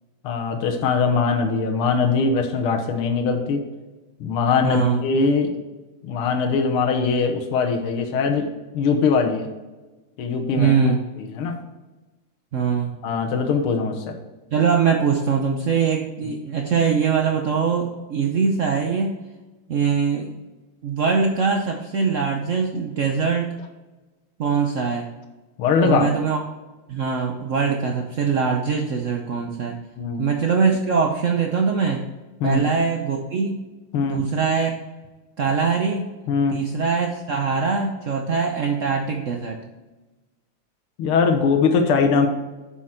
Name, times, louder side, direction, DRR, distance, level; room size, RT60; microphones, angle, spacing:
voice 1, 0.2-3.6 4.2-5.5 6.0-9.5 10.2-10.7 11.2-11.5 13.0-14.2 25.6-26.1 30.0-30.2 32.4-32.6 33.9-34.2 36.3-36.6 41.0-42.3, left 5 dB, 80° left, 4 dB, 1.9 m, -21 dB
voice 2, 4.6-5.0 10.6-11.0 12.5-12.9 14.5-19.2 19.7-20.3 20.8-23.5 24.4-25.1 25.8-26.4 26.9-29.8 30.2-32.1 32.4-33.6 34.0-34.7 35.4-36.1 36.5-39.6, right 5 dB, 75° right, 2 dB, 0.7 m, -22 dB
7.6 x 6.2 x 4.3 m, 1.2 s
omnidirectional pair, 2.4 m